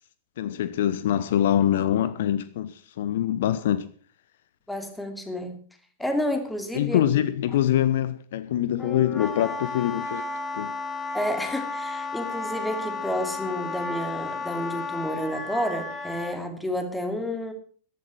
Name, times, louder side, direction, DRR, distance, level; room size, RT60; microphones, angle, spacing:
voice 1, 0.4-3.9 6.7-10.2 10.5-10.7, left 11 dB, 55° left, 0.7 m, -24 dB
voice 2, 4.7-5.6 6.0-7.1 11.1-17.5, left 1 dB, 5° left, 2.8 m, -30 dB
Wind instrument woodwind instrument, 8.8-16.4, left 3 dB, 20° left, 4.3 m, -33 dB
14.5 x 11.0 x 6.1 m
figure-of-eight pair, 95°, 0 cm